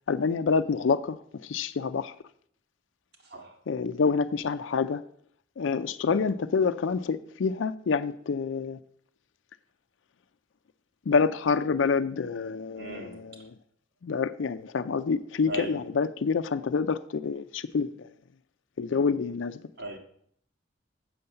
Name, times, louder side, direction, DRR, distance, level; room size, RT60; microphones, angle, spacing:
voice 1, 0.1-2.2 3.7-5.0 5.6-8.8 11.1-13.4 14.0-18.1 18.8-19.6, left 5 dB, 85° left, 0.4 m, -27 dB
voice 2, 3.2-3.6 12.7-13.5 15.5-15.8 19.8-20.0, right 2 dB, 60° right, 1.8 m, -38 dB
7.7 x 7.0 x 6.6 m
head